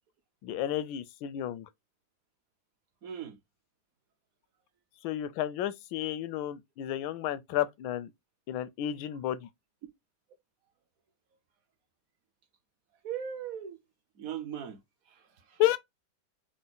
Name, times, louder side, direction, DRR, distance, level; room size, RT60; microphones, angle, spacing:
voice 1, 0.4-1.7 5.0-8.1 8.5-9.5 15.6-15.8, left 12 dB, 85° left, 1.3 m, -31 dB
voice 2, 3.0-3.4 13.0-13.8 14.2-14.8 15.1-15.6, right 8 dB, 60° right, 0.9 m, -39 dB
4.7 x 2.1 x 4.0 m
omnidirectional pair, 2.1 m